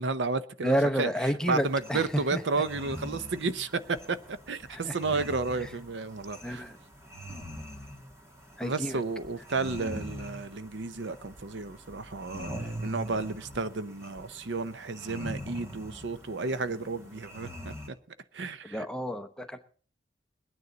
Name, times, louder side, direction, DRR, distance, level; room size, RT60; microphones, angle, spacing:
voice 1, 0.0-1.1 1.5-6.6 8.6-12.5 12.8-18.0 18.3-18.9, right 3 dB, 85° right, 13 dB, 0.7 m, -32 dB
voice 2, 0.6-2.4 4.7-5.0 5.6-5.7 6.4-6.8 8.6-9.0 18.6-19.6, equal, 5° left, 6 dB, 0.8 m, -30 dB
sound 1, 1.4-17.9, equal, 15° right, 2.4 m, -43 dB
21.5 x 9.6 x 4.0 m, 0.42 s
head